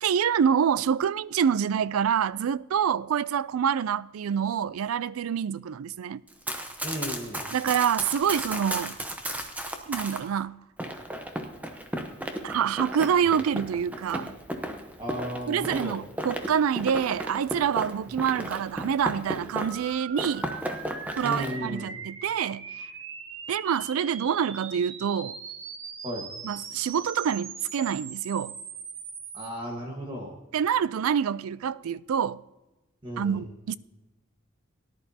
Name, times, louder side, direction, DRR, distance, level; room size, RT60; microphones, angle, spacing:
voice 1, 0.0-6.2 7.5-9.0 9.9-10.6 12.4-14.3 15.5-20.5 21.2-22.7 23.5-25.4 26.4-28.6 30.5-32.4 33.2-33.8, right 8 dB, 90° right, 0.4 m, -26 dB
Run, 6.3-10.2 10.8-19.9 20.2-21.5, right 1 dB, 5° right, 0.8 m, -35 dB
voice 2, 6.8-7.4 15.0-16.0 21.2-21.9 26.0-26.3 29.3-30.3 33.0-33.4, equal, 25° right, 1.4 m, -34 dB
sound 1, 19.6-29.5, right 5 dB, 65° right, 1.2 m, -41 dB
18.0 x 11.0 x 2.8 m
head